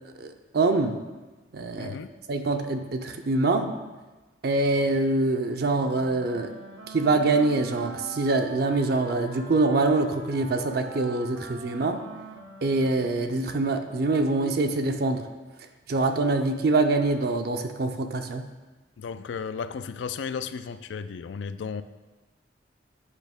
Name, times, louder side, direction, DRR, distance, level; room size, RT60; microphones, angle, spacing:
voice 1, 0.2-1.0 1.5-2.0 2.3-3.8 4.4-6.5 6.9-12.0 12.6-15.3 15.9-18.5, right 2 dB, 60° right, 6 dB, 0.5 m, -25 dB
voice 2, 1.8-2.1 19.0-21.8, left 6 dB, 85° left, 12 dB, 0.4 m, -34 dB
Wind instrument woodwind instrument, 5.7-13.9, right 3 dB, 85° right, 0.9 m, -43 dB
8.3 x 5.5 x 3.5 m, 1.2 s
head